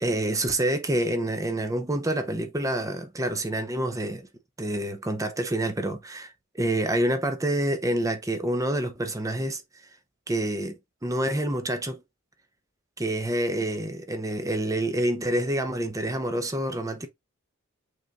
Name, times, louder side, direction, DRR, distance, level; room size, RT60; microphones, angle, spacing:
voice 1, 0.0-4.3 4.6-9.6 10.3-12.0 13.0-17.1, right 1 dB, 15° right, 0.7 m, -27 dB
6.6 x 3.3 x 2.4 m
head